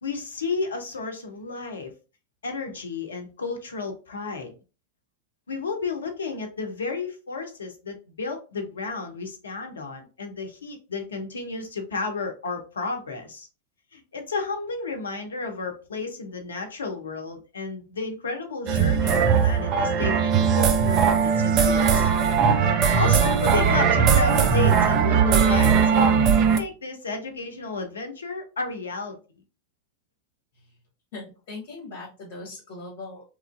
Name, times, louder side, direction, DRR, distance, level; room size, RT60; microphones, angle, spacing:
voice 1, 0.0-1.9 2.4-4.5 5.5-13.5 13.9-22.1 22.9-29.2, left 4 dB, 70° left, 5 dB, 0.6 m, -32 dB
sound 1, 18.7-26.6, right 6 dB, 35° right, 0.4 m, -19 dB
voice 2, 31.1-33.2, left 3 dB, 45° left, -2 dB, 1.0 m, -39 dB
3.0 x 2.4 x 2.3 m, 0.33 s
figure-of-eight pair, 90°, 0 cm